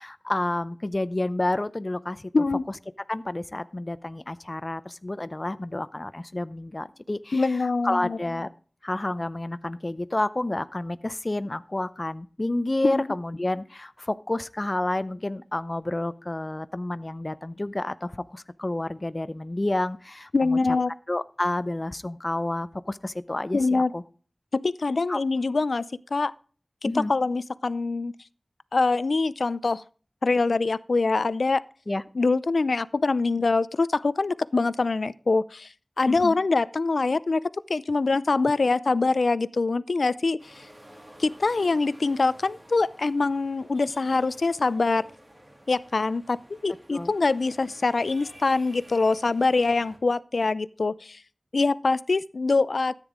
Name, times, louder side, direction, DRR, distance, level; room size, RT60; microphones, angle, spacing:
voice 1, 0.0-2.3 3.1-7.6 7.8-8.5 8.8-20.6 21.1-24.0 25.1-25.2 26.8-27.1 31.9-32.0 36.1-36.4 46.9-47.1, left 1 dB, 35° left, 0.6 m, -29 dB
voice 2, 7.3-8.2 12.8-13.0 20.3-20.9 23.5-23.9 24.5-25.9 26.1-26.3 26.8-28.1 28.7-29.8 30.2-31.6 32.2-37.4 37.7-40.7 41.2-45.0 45.7-51.2 51.5-52.9, left 3 dB, 85° left, 0.4 m, -24 dB
sound 1, 40.4-50.0, right 1 dB, 30° right, 2.8 m, -51 dB
13.5 x 9.0 x 3.7 m
wide cardioid pair, 60°, 0 cm